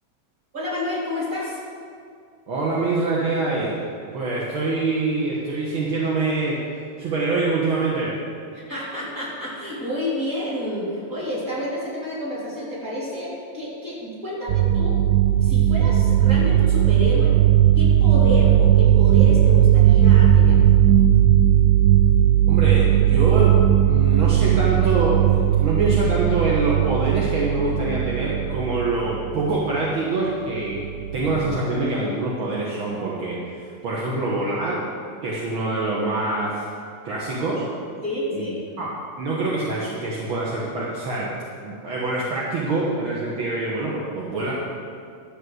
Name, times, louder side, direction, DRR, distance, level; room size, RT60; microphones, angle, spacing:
voice 1, 0.5-1.6 8.5-15.0 15.4-17.3 17.7-20.6 38.0-38.6, left 1 dB, 25° right, -8 dB, 3.7 m, -29 dB
voice 2, 2.5-3.7 4.1-6.6 7.0-8.1 22.5-30.8 31.1-34.8 35.2-36.6 37.0-37.6 38.3-38.9 39.2-41.3 41.6-44.6, right 2 dB, 50° right, -5 dB, 1.6 m, -25 dB
sound 1, 14.5-29.6 30.7-31.6, right 11 dB, 85° right, 1.8 m, -17 dB
12.5 x 6.5 x 7.9 m, 2.3 s
omnidirectional pair, 3.9 m